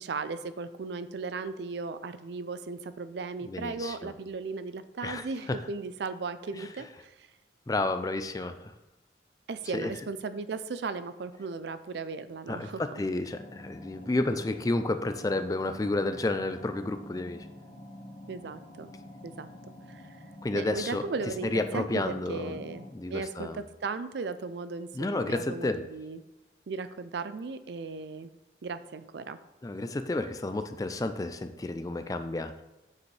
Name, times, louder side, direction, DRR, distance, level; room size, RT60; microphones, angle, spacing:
voice 1, 0.0-7.3 9.5-12.8 18.3-18.9 19.2-19.5 19.9-20.2 20.5-22.8 23.1-26.2 26.7-28.3 28.6-29.4, right 4 dB, 70° right, 13 dB, 0.4 m, -36 dB
voice 2, 3.5-4.1 5.0-5.6 6.5-6.7 7.7-8.7 9.7-9.9 12.5-17.4 20.4-21.0 21.4-22.6 22.9-23.6 24.9-25.8 29.6-32.6, left 2 dB, 20° left, 9 dB, 0.3 m, -31 dB
sound 1, 13.3-22.9, left 1 dB, 65° left, 2.0 m, -47 dB
7.1 x 6.7 x 3.3 m, 1.0 s
head